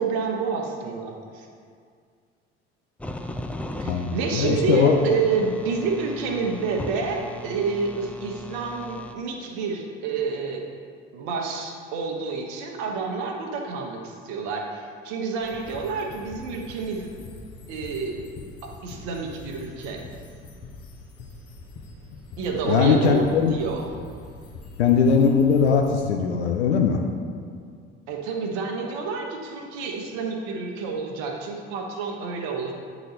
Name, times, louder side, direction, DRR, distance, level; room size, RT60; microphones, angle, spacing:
voice 1, 0.0-1.5 3.8-10.6 11.1-17.1 17.7-18.2 18.6-20.0 22.4-23.9 28.1-32.7, right 5 dB, 65° right, 1 dB, 1.1 m, -29 dB
sound 1, 3.0-9.1, left 1 dB, 5° left, 0.4 m, -37 dB
voice 2, 3.8-5.0 22.7-23.5 24.8-27.0, left 6 dB, 80° left, 2 dB, 0.5 m, -20 dB
sound 2, 15.4-25.9, left 3 dB, 45° left, 1.2 m, -43 dB
9.1 x 4.0 x 4.2 m, 2.1 s
figure-of-eight pair, 55°, 32 cm